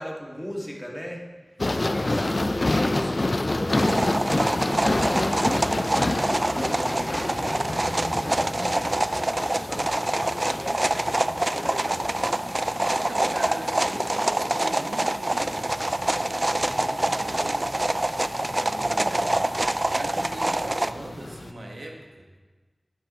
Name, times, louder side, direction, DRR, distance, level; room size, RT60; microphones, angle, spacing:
voice 1, 0.0-12.4, equal, ahead, -2 dB, 1.9 m, -38 dB
sound 1, 1.6-21.5, left 2 dB, 50° left, 0.5 m, -30 dB
sound 2, 3.7-20.9, right 1 dB, 35° right, 0.3 m, -26 dB
voice 2, 12.9-16.1 16.4-17.7 18.5-19.6 19.8-22.1, right 1 dB, 80° right, 1 dB, 1.4 m, -39 dB
9.3 x 9.2 x 4.2 m, 1.4 s
wide cardioid pair, 45°, 0 cm